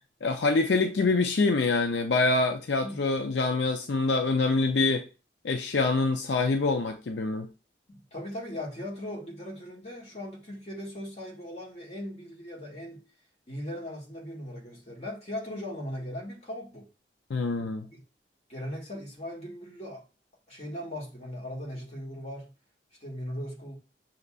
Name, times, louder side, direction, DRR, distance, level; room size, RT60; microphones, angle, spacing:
voice 1, 0.2-5.0 5.4-7.5 17.3-17.9, left 3 dB, 80° left, 0.5 m, -25 dB
voice 2, 7.9-13.0 13.5-16.9 17.9-18.0 18.5-20.0 20.5-22.5 23.0-23.8, left 1 dB, 35° left, 1.8 m, -38 dB
6.6 x 2.8 x 2.4 m
head